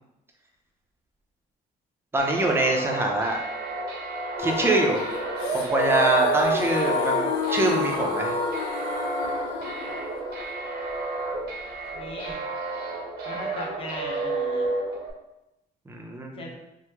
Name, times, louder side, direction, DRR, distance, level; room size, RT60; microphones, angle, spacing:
voice 1, 2.1-3.4 4.4-5.0 5.5-8.4 15.9-16.3, right 2 dB, 15° right, 0 dB, 0.5 m, -24 dB
sound 1, 2.2-15.1, right 4 dB, 75° right, 0.7 m, -30 dB
sound 2, 4.4-12.3, left 6 dB, 85° left, 0.4 m, -29 dB
voice 2, 11.9-12.4 13.2-14.6 16.3-16.6, left 2 dB, 35° left, 1 dB, 0.7 m, -37 dB
2.9 x 2.1 x 3.4 m, 0.89 s
cardioid pair, 110°, 17 cm